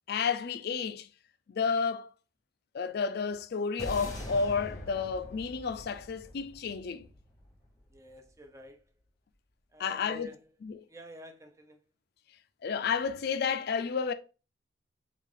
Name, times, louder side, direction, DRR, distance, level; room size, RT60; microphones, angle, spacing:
voice 1, 0.1-1.1 1.5-2.1 2.7-7.1 9.8-10.3 10.6-10.9 12.6-14.1, left 5 dB, 55° left, 0.4 m, -31 dB
sound 1, 3.8-8.2, equal, 20° left, 0.9 m, -43 dB
voice 2, 7.9-8.8 9.7-10.4 10.9-11.8, equal, 15° right, 0.5 m, -49 dB
3.3 x 2.4 x 3.6 m
head